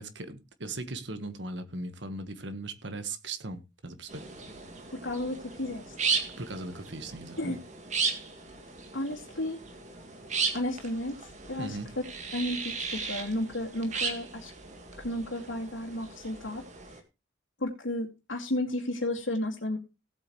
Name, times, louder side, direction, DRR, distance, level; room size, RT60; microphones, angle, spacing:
voice 1, 0.0-4.2 6.4-7.6 11.6-11.9, right 2 dB, 70° right, 10 dB, 1.5 m, -38 dB
sound 1, 4.1-17.0, right 5 dB, 40° right, 1.9 m, -36 dB
voice 2, 4.9-5.9 7.4-7.6 8.9-9.6 10.5-11.2 11.5-11.8 12.3-14.5 15.0-16.6 17.6-19.8, left 1 dB, 90° left, -2 dB, 2.3 m, -33 dB
17.0 x 8.3 x 3.2 m, 0.27 s
head